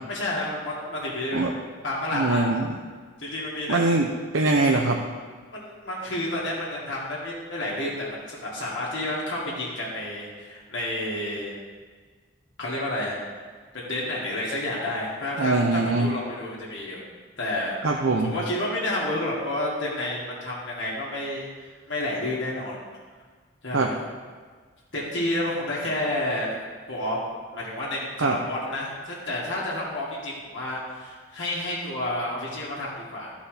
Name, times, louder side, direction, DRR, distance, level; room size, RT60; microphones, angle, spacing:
voice 1, 0.1-1.5 1.8-2.5 3.2-3.8 5.5-11.6 12.6-13.4 13.7-17.0 17.4-21.5 21.9-22.8 23.6-24.0 24.9-27.2 27.5-33.3, left 1 dB, 70° left, -6 dB, 2.1 m, -30 dB
voice 2, 2.1-2.7 3.7-5.0 15.4-16.1 17.8-18.3 23.7-23.9 28.2-28.4, right 3 dB, 90° right, 1 dB, 0.7 m, -22 dB
13.0 x 5.2 x 5.0 m, 1.5 s
head